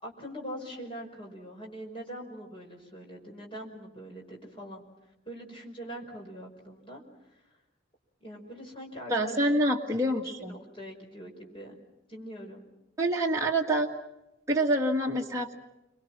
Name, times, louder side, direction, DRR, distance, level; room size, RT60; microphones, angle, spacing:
voice 1, 0.0-4.8 5.3-7.0 7.3-7.4 8.2-11.8 12.1-12.6, right 1 dB, 25° left, 0 dB, 5.4 m, -43 dB
voice 2, 9.1-10.5 13.0-13.9 14.5-15.5, right 1 dB, 15° right, -2 dB, 1.8 m, -26 dB
30.0 x 24.0 x 6.0 m, 0.95 s
head